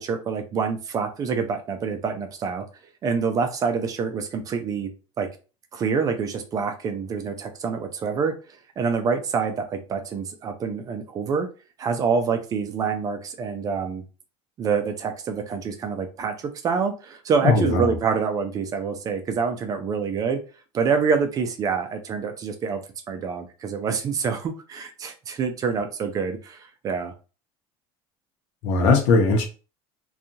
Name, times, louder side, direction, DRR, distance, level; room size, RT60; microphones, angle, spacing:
voice 1, 0.0-2.6 3.0-4.9 5.2-5.3 5.7-8.3 8.8-11.5 11.8-14.0 14.6-20.4 20.7-22.8 23.1-27.1, right 5 dB, 30° right, 0.4 m, -26 dB
voice 2, 17.4-17.9 28.6-29.5, left 3 dB, 65° left, 0.8 m, -19 dB
2.7 x 2.3 x 2.6 m
cardioid pair, 150°, 12 cm